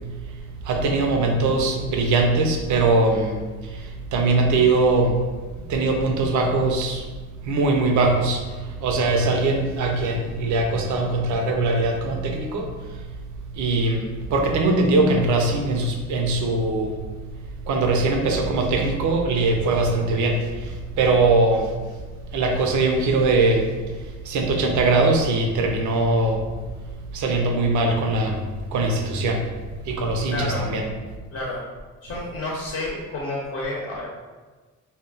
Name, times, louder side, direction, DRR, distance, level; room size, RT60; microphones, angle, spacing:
voice 1, 0.6-3.4 3.7-3.8 4.1-5.2 5.7-7.0 7.5-8.4 8.8-12.7 13.5-16.9 17.7-20.7 21.0-21.7 22.3-23.7 24.3-26.4 27.1-28.4 28.7-29.4 29.9-30.9, right 2 dB, 75° right, 2 dB, 0.6 m, -21 dB
voice 2, 30.3-30.6 31.3-31.6 32.0-34.1, left 2 dB, 45° left, -4 dB, 0.7 m, -30 dB
2.2 x 2.1 x 3.8 m, 1.3 s
cardioid pair, 90°, 30 cm